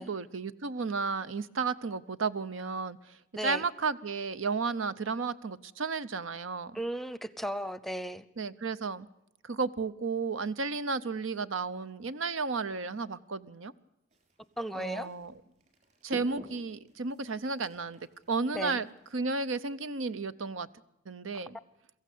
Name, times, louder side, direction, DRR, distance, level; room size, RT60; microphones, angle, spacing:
voice 1, 0.0-6.8 8.4-9.1 9.4-13.7 14.7-15.3 16.0-18.0 18.3-18.9 19.1-20.7 21.1-21.6, right 4 dB, 90° right, 15 dB, 0.8 m, -33 dB
voice 2, 3.4-3.7 6.7-8.2 14.6-15.1 18.5-18.8, equal, ahead, 15 dB, 0.7 m, -35 dB
sound 1, 14.1-19.2, equal, 40° right, 5.6 m, -51 dB
23.0 x 15.0 x 8.5 m, 0.88 s
head